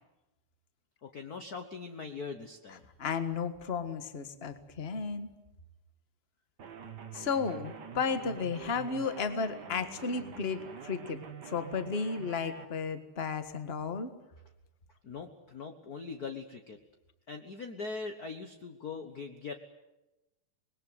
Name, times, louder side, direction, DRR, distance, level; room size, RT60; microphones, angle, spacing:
voice 1, 1.0-2.8 15.0-16.8 17.3-19.5, left 4 dB, 55° left, 6 dB, 1.1 m, -41 dB
voice 2, 3.0-5.3 7.1-11.2 11.4-14.1, left 5 dB, 30° left, 9 dB, 1.1 m, -33 dB
sound 1, 6.6-12.7, right 6 dB, 45° right, 1.5 m, -46 dB
26.0 x 21.0 x 8.1 m, 1.0 s
omnidirectional pair, 3.6 m